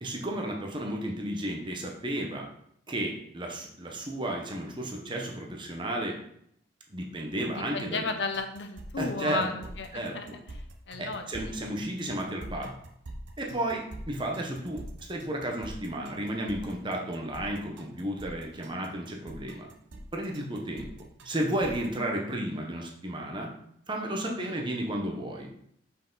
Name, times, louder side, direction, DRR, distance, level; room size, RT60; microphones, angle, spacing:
voice 1, 0.0-2.5 2.9-6.2 6.9-8.0 9.0-9.4 9.9-10.2 11.0-12.7 13.4-14.8 15.1-19.7 19.9-20.9 21.2-23.5 23.9-25.5, right 1 dB, 25° right, 1 dB, 0.9 m, -33 dB
voice 2, 7.5-11.7 24.2-24.7, left 4 dB, 60° left, 6 dB, 0.7 m, -35 dB
sound 1, 8.3-22.0, right 1 dB, 70° right, 0.8 m, -45 dB
5.6 x 4.7 x 3.9 m, 0.70 s
head